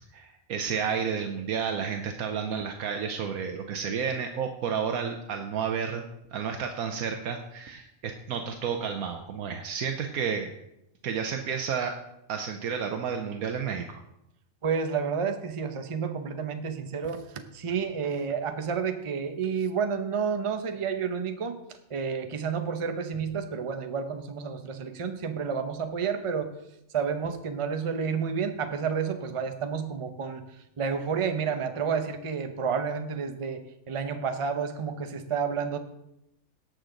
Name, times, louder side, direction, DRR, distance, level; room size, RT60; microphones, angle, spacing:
voice 1, 0.1-6.0 6.3-10.5 11.0-11.9 12.3-14.0, right 6 dB, 80° right, 5 dB, 1.2 m, -31 dB
voice 2, 14.6-21.6 21.9-26.5 26.9-30.5 30.8-35.8, right 6 dB, 30° right, 7 dB, 0.6 m, -30 dB
18.0 x 6.4 x 3.8 m, 0.85 s
omnidirectional pair, 1.5 m